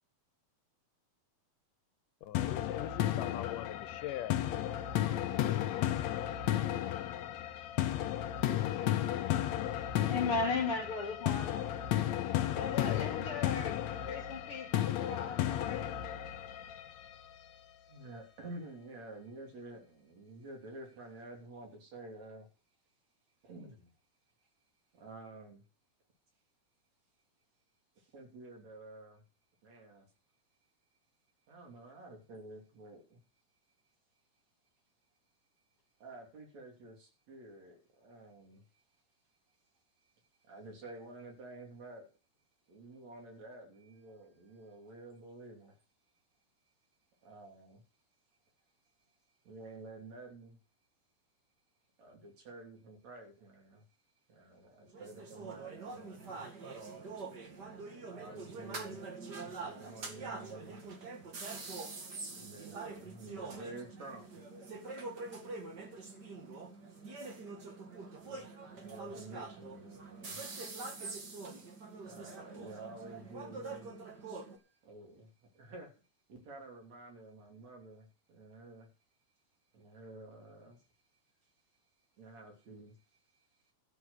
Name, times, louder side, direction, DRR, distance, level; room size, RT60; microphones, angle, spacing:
voice 1, 2.2-4.4 4.9-5.6, left 13 dB, 85° left, 2.6 m, -42 dB
sound 1, 2.3-17.3, left 12 dB, 70° left, 2.0 m, -33 dB
voice 2, 10.0-11.6 12.5-13.8 14.1-15.9, left 4 dB, 50° left, 2.2 m, -36 dB
voice 3, 17.9-22.5 23.4-23.9 24.9-25.6 28.0-29.2 29.6-30.1 31.5-33.2 36.0-38.6 40.4-42.1 42.7-45.8 47.2-47.8 49.4-50.6 52.0-53.9 54.3-56.5 58.1-59.0 59.4-60.8 62.3-64.4 67.7-67.8 68.2-70.8 72.0-75.9 76.3-78.9 79.7-80.8 82.2-83.2, right 2 dB, 60° right, 4.3 m, -50 dB
sound 2, 54.9-74.6, right 3 dB, 35° right, 2.2 m, -45 dB
13.0 x 6.5 x 8.1 m
omnidirectional pair, 3.7 m